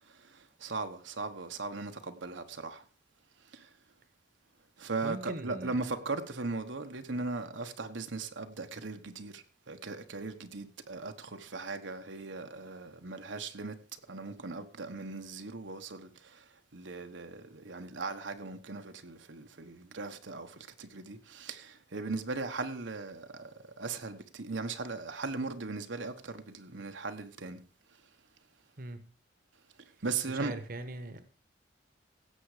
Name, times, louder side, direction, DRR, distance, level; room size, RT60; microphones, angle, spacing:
voice 1, 0.1-2.8 3.4-3.7 4.8-13.8 14.1-27.6 30.0-30.5, right 3 dB, 75° right, 1.2 m, -38 dB
voice 2, 5.0-5.7 28.8-29.0 30.3-31.2, right 1 dB, 50° right, 1.2 m, -40 dB
16.5 x 7.8 x 4.9 m
head